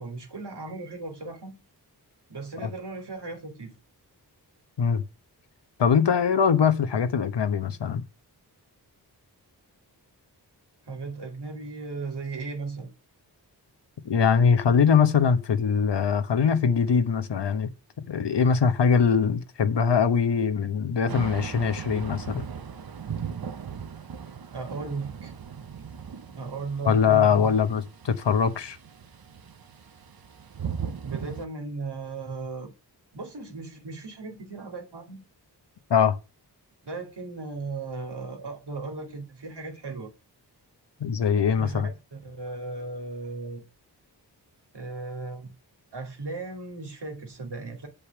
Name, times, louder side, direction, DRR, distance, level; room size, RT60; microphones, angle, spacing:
voice 1, 0.0-1.6 2.3-3.7 10.9-12.9 24.5-25.3 26.3-27.5 31.0-32.7 33.1-35.2 36.8-40.1 41.6-41.8 42.1-43.6 44.7-45.5 45.9-47.9, right 3 dB, 75° right, 2.7 m, -36 dB
voice 2, 5.8-8.0 14.0-17.7 18.1-22.4 26.8-28.8 35.9-36.2 41.0-41.9, left 6 dB, 85° left, 1.1 m, -22 dB
Thunder / Rain, 21.1-31.4, right 7 dB, 60° right, 0.9 m, -38 dB
8.5 x 5.3 x 7.2 m
wide cardioid pair, 80°, 41 cm